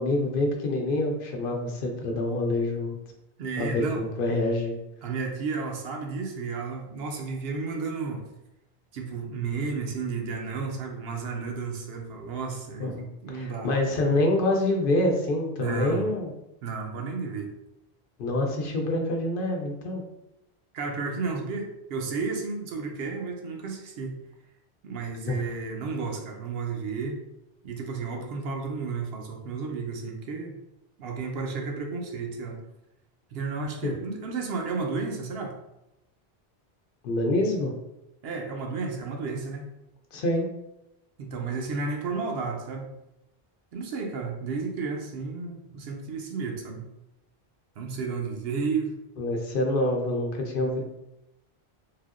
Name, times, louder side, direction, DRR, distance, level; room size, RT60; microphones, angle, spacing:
voice 1, 0.0-3.0 3.6-4.8 12.8-16.3 18.2-20.0 25.3-25.4 33.8-34.0 37.0-37.7 40.1-40.5 49.2-50.8, left 1 dB, 65° left, 1 dB, 0.7 m, -26 dB
voice 2, 3.4-4.0 5.0-8.2 8.9-12.9 13.2-14.2 15.6-16.1 16.6-17.5 20.7-24.1 24.8-27.2 27.6-30.5 31.0-32.6 33.3-35.5 38.2-39.6 41.2-42.9 43.7-46.8 47.8-48.9, right 4 dB, 75° right, 2 dB, 0.8 m, -32 dB
3.3 x 2.7 x 2.4 m, 0.89 s
omnidirectional pair, 1.0 m